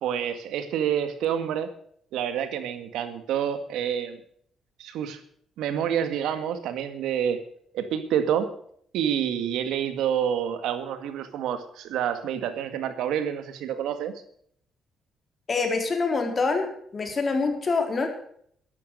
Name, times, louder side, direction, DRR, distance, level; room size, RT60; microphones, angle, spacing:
voice 1, 0.0-1.7 2.1-4.2 4.8-5.2 5.6-7.4 7.7-8.5 8.9-14.1, right 9 dB, 85° right, 10 dB, 1.9 m, -28 dB
voice 2, 15.5-16.7 16.9-18.1, left 4 dB, 35° left, 4 dB, 4.2 m, -25 dB
13.5 x 12.0 x 6.4 m, 0.63 s
cardioid pair, 90°, 0 cm